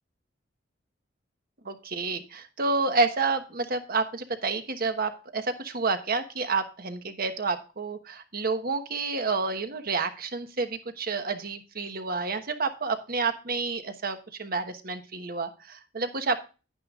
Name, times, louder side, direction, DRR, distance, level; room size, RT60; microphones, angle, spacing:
voice 1, 1.6-16.4, right 4 dB, 50° right, 8 dB, 1.2 m, -29 dB
10.5 x 9.7 x 2.4 m, 0.32 s
head